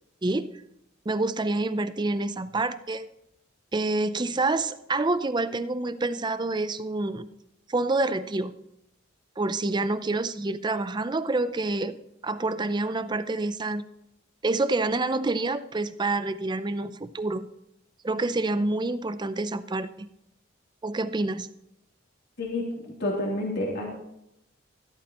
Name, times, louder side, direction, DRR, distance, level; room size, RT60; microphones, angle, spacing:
voice 1, 1.1-3.1 3.7-7.3 7.7-8.5 9.4-12.0 12.2-13.8 14.4-17.5 18.0-20.1 20.8-21.5, right 2 dB, 20° right, 13 dB, 0.5 m, -27 dB
voice 2, 22.4-23.9, left 1 dB, 55° left, -2 dB, 3.0 m, -29 dB
14.5 x 13.0 x 3.0 m, 0.83 s
head